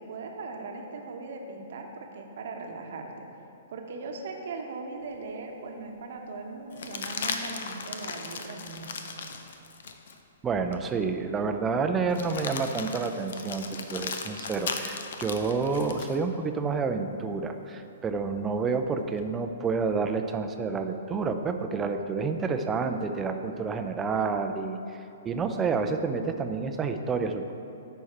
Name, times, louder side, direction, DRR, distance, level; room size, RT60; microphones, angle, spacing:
voice 1, 0.0-3.3 3.7-8.9, right 3 dB, 55° right, 2 dB, 1.0 m, -39 dB
sound 1, 5.1-5.2 6.7-10.2 10.7-10.8 12.1-16.2 18.4-19.2, left 5 dB, 60° left, 0.6 m, -37 dB
voice 2, 10.4-27.5, right 4 dB, 15° right, 6 dB, 0.5 m, -29 dB
11.0 x 4.6 x 4.3 m, 2.7 s
figure-of-eight pair, 120°, 0 cm